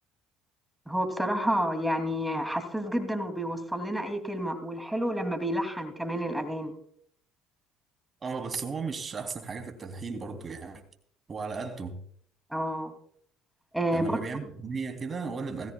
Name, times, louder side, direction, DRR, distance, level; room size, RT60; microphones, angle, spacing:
voice 1, 0.9-6.7 12.5-12.9 13.7-14.2, equal, 5° right, 2.8 m, -30 dB
voice 2, 8.2-10.8 11.3-12.0 13.9-15.7, right 4 dB, 30° right, 3.3 m, -35 dB
19.0 x 16.0 x 2.4 m
cardioid pair, 105°, 0 cm